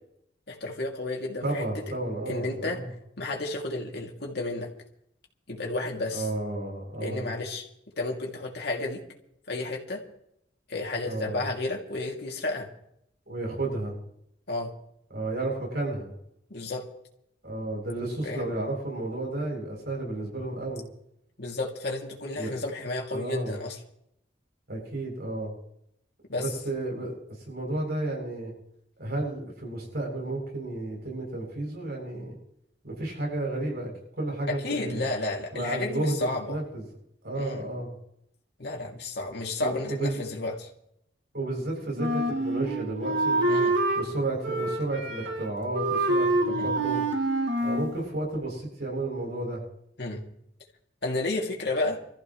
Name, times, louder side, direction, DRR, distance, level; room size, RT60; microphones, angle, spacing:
voice 1, 0.5-1.6 2.3-2.8 3.2-4.7 5.5-6.3 7.0-7.7 8.0-9.0 9.5-10.0 10.7-12.7 14.5-14.7 16.5-16.9 18.2-18.5 21.4-23.8 26.3-26.5 34.5-36.6 37.3-37.6 38.6-40.7 43.5-43.8 46.5-46.7 50.0-50.2 51.0-52.0, left 2 dB, 65° left, 0 dB, 2.8 m, -32 dB
voice 2, 1.4-2.9 6.1-7.3 11.0-11.4 13.3-14.0 15.1-16.1 17.4-20.8 22.4-22.5 23.1-23.6 24.7-25.5 26.3-27.1 27.5-28.5 29.0-32.4 32.8-33.9 34.2-35.0 35.5-36.8 37.2-37.9 39.6-40.2 41.3-43.6 43.9-47.0 47.6-49.6, right 2 dB, 60° right, -1 dB, 8.0 m, -32 dB
Wind instrument woodwind instrument, 42.0-44.1 44.4-45.5 45.7-47.9, right 2 dB, 90° right, 3.0 m, -26 dB
25.0 x 14.5 x 3.2 m, 0.76 s
head